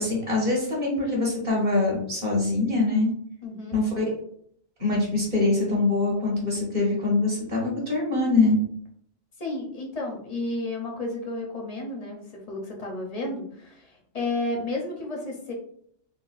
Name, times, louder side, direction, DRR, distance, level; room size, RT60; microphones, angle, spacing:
voice 1, 0.0-3.1 3.7-4.0 4.8-8.6, left 3 dB, 40° right, -3 dB, 1.3 m, -24 dB
voice 2, 3.4-3.8 9.4-15.5, left 2 dB, 45° left, 1 dB, 0.6 m, -32 dB
4.2 x 2.2 x 2.4 m, 0.65 s
omnidirectional pair, 1.2 m